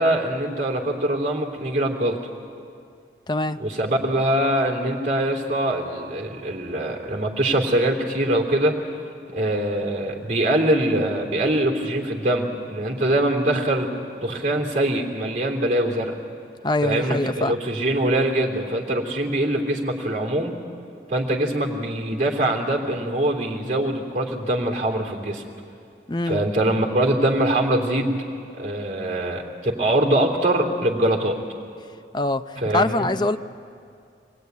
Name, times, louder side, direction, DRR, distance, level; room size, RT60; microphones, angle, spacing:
voice 1, 0.0-2.2 3.6-8.7 9.3-13.9 14.2-16.1 16.8-20.5 21.1-25.4 26.3-28.1 28.6-31.4 32.6-33.1, right 1 dB, 45° right, 1 dB, 3.2 m, -23 dB
voice 2, 3.3-3.6 16.6-17.6 26.1-26.4 32.1-33.4, left 2 dB, 25° left, 9 dB, 0.6 m, -24 dB
26.0 x 20.0 x 9.5 m, 2.4 s
head